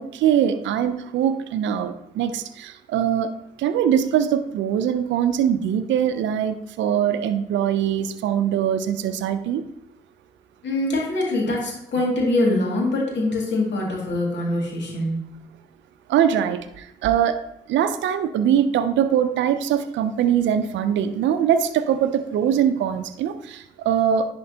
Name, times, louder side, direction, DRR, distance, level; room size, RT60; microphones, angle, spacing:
voice 1, 0.0-3.3 3.6-9.6 16.1-17.4 17.7-24.3, right 9 dB, 70° right, 10 dB, 0.5 m, -22 dB
voice 2, 10.6-15.3, left 2 dB, 65° left, -3 dB, 2.3 m, -23 dB
10.5 x 4.3 x 2.8 m, 0.78 s
hypercardioid pair, 45°, 20 cm